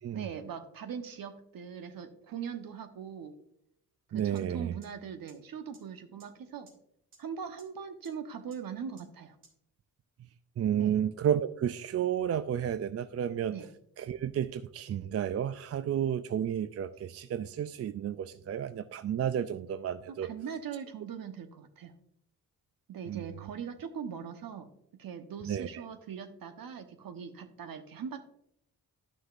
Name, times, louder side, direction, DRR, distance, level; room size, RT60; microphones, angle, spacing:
voice 1, 0.1-3.3 4.1-6.8 7.2-9.4 10.8-11.0 13.5-13.7 20.1-21.9 22.9-24.7 25.0-28.3, right 7 dB, 60° right, 8 dB, 1.0 m, -41 dB
voice 2, 4.1-4.7 10.6-13.5 14.0-20.3 23.1-23.2 25.5-25.8, right 9 dB, 40° right, 13 dB, 0.4 m, -31 dB
sound 1, 4.4-4.5 4.8-4.9 5.3-5.4 5.7-5.8 6.2-6.3 6.7-6.8 7.1-7.2 7.6-7.7 8.0-8.1 8.5-8.6 9.0-9.1 9.4-9.5, right 4 dB, 80° right, 2.1 m, -56 dB
11.5 x 6.2 x 2.5 m, 0.74 s
supercardioid pair, 50°, 39 cm